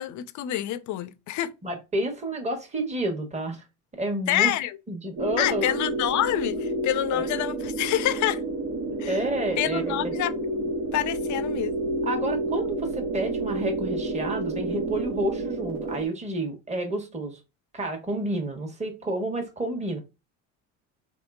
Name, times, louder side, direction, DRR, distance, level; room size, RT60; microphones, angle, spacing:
voice 1, 0.0-1.5 4.3-4.8 5.4-8.4 9.0-9.2 9.6-10.3 10.9-11.7, left 14 dB, 45° left, 0.5 m, -27 dB
voice 2, 1.6-3.6 3.9-4.5 4.9-5.7 7.1-7.3 9.1-10.1 12.0-17.4 17.7-20.0, right 1 dB, 15° right, 1.2 m, -30 dB
sound 1, 5.2-16.1, right 2 dB, 60° right, 1.1 m, -30 dB
3.6 x 3.0 x 2.4 m
supercardioid pair, 80°, 41 cm